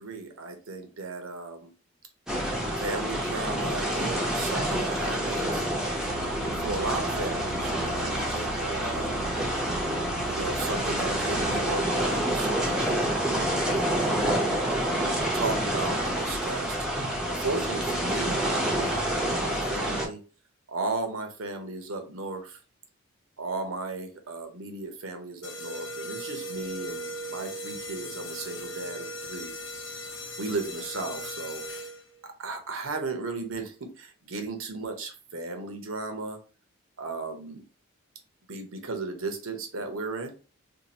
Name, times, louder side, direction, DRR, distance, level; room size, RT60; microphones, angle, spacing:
voice 1, 0.0-1.7 2.8-5.7 6.6-9.3 10.2-13.0 13.3-14.3 15.3-16.8 17.2-20.2 20.7-22.6 23.4-30.0 30.4-31.6 32.2-36.4 37.0-37.6 38.5-40.3, right 3 dB, 80° right, 5 dB, 0.8 m, -35 dB
sound 1, 2.3-20.1, right 1 dB, 5° right, 0.6 m, -28 dB
Musical instrument, 6.0-11.8, right 5 dB, 60° right, 0.5 m, -41 dB
sound 2, 25.4-32.2, equal, 65° left, 0.7 m, -38 dB
2.7 x 2.5 x 4.0 m, 0.35 s
head